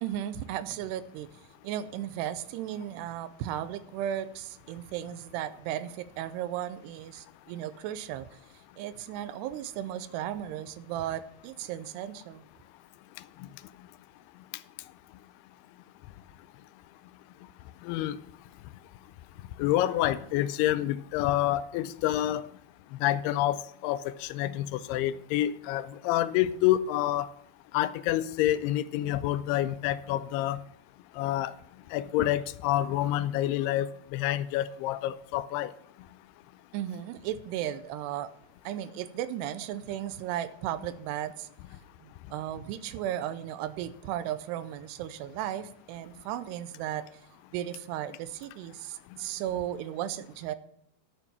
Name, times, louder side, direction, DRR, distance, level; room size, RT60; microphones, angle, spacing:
voice 1, 0.0-8.4 8.8-12.4 36.7-38.3 38.6-41.5 42.0-47.2 47.5-50.6, right 11 dB, 85° right, 2.7 m, -35 dB
voice 2, 13.2-13.9 14.3-15.2 16.0-16.2 16.6-16.7 17.4-18.7 19.0-19.1 19.4-22.6 22.9-27.3 27.7-30.6 31.1-36.1 49.1-49.3, left 13 dB, 80° left, 2.5 m, -29 dB
11.5 x 7.1 x 5.7 m
omnidirectional pair, 4.7 m